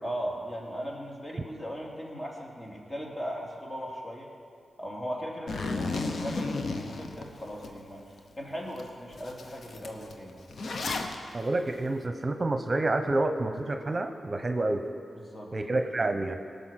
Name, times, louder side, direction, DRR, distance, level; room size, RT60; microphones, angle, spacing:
voice 1, 0.0-4.3 4.8-10.4 15.1-15.5, equal, 30° left, -2 dB, 3.1 m, -38 dB
Zipper (clothing), 5.5-7.7 8.2-8.3 8.8-8.9 9.1-11.2, left 3 dB, 70° left, 0.9 m, -33 dB
voice 2, 11.3-14.8 15.5-16.4, right 2 dB, 40° right, 6 dB, 0.9 m, -28 dB
18.0 x 6.7 x 5.9 m, 2.3 s
supercardioid pair, 40°, 0 cm